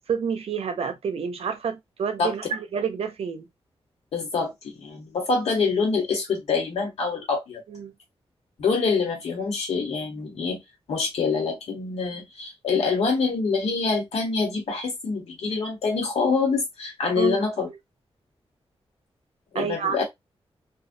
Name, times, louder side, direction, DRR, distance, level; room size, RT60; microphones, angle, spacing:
voice 1, 0.1-3.4 7.7-7.9 17.2-17.4 19.5-20.0, right 6 dB, 75° right, 0.6 m, -28 dB
voice 2, 4.1-7.6 8.6-10.6 10.9-17.7 19.5-20.0, left 4 dB, 90° left, 1.1 m, -25 dB
2.3 x 2.1 x 2.6 m
wide cardioid pair, 160°, 10 cm